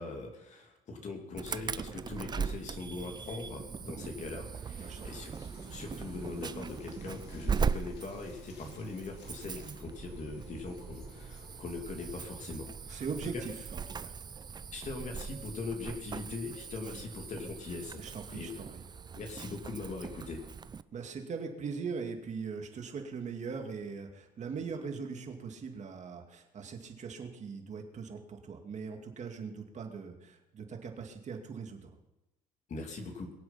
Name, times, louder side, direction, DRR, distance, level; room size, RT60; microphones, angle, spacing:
voice 1, 0.0-5.3 5.7-13.1 13.3-13.4 14.7-18.0 18.3-18.6 19.1-20.4 32.7-33.3, left 3 dB, 45° left, 3 dB, 2.8 m, -41 dB
Insect / Alarm, 1.4-20.8, right 6 dB, 25° right, 0.5 m, -40 dB
sound 1, 4.8-12.2, left 4 dB, 80° left, 2.8 m, -56 dB
voice 2, 12.9-14.1 18.0-18.8 20.9-31.9, right 5 dB, 45° right, 4 dB, 2.3 m, -40 dB
22.5 x 7.8 x 5.8 m, 0.95 s
cardioid pair, 110°, 17 cm